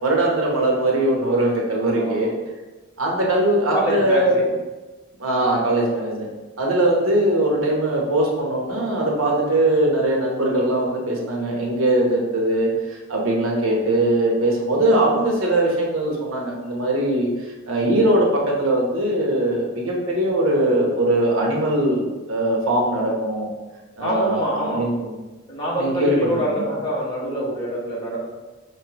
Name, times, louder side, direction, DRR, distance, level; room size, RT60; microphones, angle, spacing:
voice 1, 0.0-2.3 3.0-4.4 5.2-6.3 6.6-17.3 17.7-23.5 24.0-25.1 25.7-26.8, right 1 dB, 90° right, -2 dB, 1.0 m, -21 dB
voice 2, 1.9-2.3 3.7-4.5 24.0-24.8 25.5-28.3, equal, 20° left, -7 dB, 1.3 m, -25 dB
5.3 x 3.2 x 3.0 m, 1.2 s
head